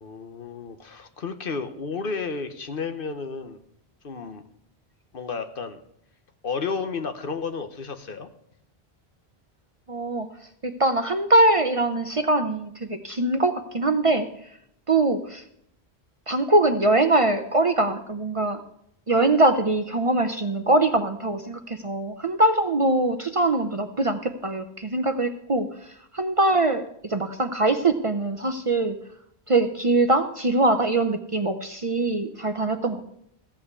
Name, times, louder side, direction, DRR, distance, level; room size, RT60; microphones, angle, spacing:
voice 1, 0.0-3.6 4.0-4.4 5.1-5.8 6.4-8.3, left 5 dB, 60° left, 9 dB, 1.1 m, -32 dB
voice 2, 9.9-10.3 10.6-14.3 14.9-15.4 16.3-18.6 19.1-29.0 29.5-33.0, right 2 dB, 35° right, 8 dB, 0.6 m, -22 dB
14.5 x 5.7 x 8.1 m, 0.72 s
omnidirectional pair, 1.1 m